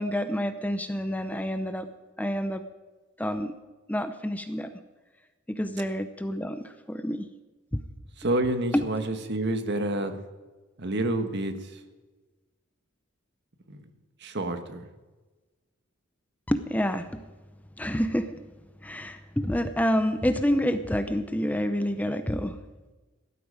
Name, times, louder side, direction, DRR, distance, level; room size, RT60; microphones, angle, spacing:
voice 1, 0.0-1.9 2.2-2.6 3.2-3.5 3.9-4.7 5.5-7.3 7.7-7.8 8.7-8.8 16.5-17.2 17.8-18.4 18.8-22.6, equal, 5° left, 10 dB, 0.6 m, -28 dB
voice 2, 8.2-10.2 10.8-11.8 13.7-13.8 14.2-14.8, right 1 dB, 55° right, 8 dB, 1.4 m, -28 dB
16.5 x 12.5 x 5.1 m, 1.2 s
head